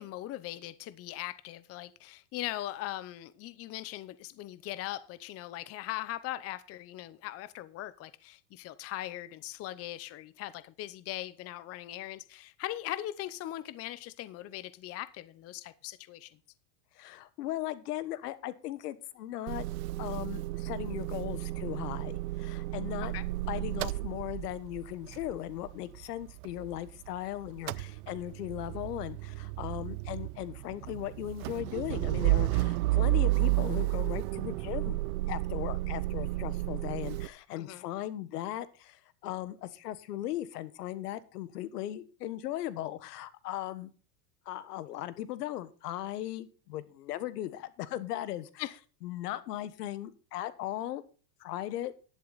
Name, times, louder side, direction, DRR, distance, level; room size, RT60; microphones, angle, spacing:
voice 1, 0.0-16.4 23.1-23.2 37.5-37.8 48.6-48.7, left 14 dB, 30° left, 15 dB, 0.8 m, -40 dB
voice 2, 16.9-19.6 20.0-23.1 23.5-35.0 35.3-43.9 44.4-48.6 49.0-51.0 51.4-51.9, left 13 dB, 80° left, 15 dB, 1.4 m, -38 dB
Motor vehicle (road) / Engine starting / Idling, 19.5-27.2 27.4-37.3, right 19 dB, 65° right, 0.7 m, -32 dB
11.5 x 10.5 x 4.1 m, 0.37 s
supercardioid pair, 130°, 47 cm